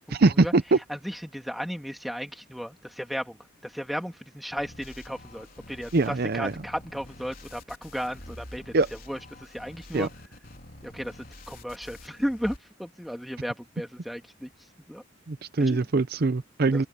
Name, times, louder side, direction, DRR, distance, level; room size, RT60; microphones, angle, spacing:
voice 1, 0.1-0.8 5.9-6.5 8.7-8.9 9.9-10.1 15.3-16.8, right 3 dB, 50° right, 0.6 m, -23 dB
voice 2, 0.9-3.4 3.7-8.7 9.1-9.2 9.5-10.1 10.8-11.1 11.5-14.5 14.9-15.0 15.6-15.8 16.7-16.8, equal, ahead, 2.1 m, -34 dB
sound 1, 4.6-12.6, left 1 dB, 45° left, 4.0 m, -47 dB
head